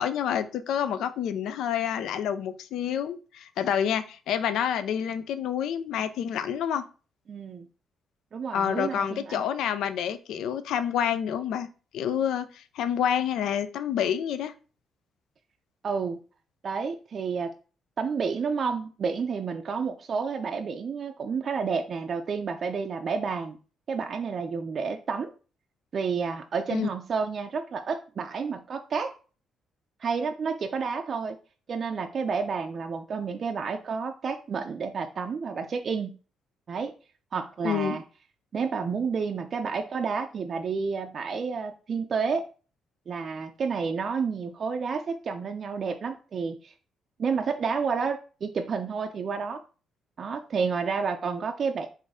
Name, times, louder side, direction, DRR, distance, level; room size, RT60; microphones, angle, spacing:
voice 1, 0.0-6.8 8.5-11.7 11.9-14.5 26.7-26.9 37.6-38.0, left 9 dB, 80° left, 12 dB, 0.3 m, -28 dB
voice 2, 7.3-7.7 8.3-9.4 15.8-16.2 16.6-17.5 18.0-23.6 23.9-25.3 25.9-29.1 30.0-31.4 31.7-36.2 36.7-36.9 37.3-38.0 38.5-42.4 43.1-46.7 47.2-49.6 50.2-51.9, right 5 dB, 50° right, 5 dB, 0.4 m, -30 dB
3.9 x 2.5 x 3.6 m, 0.37 s
cardioid pair, 90°, 0 cm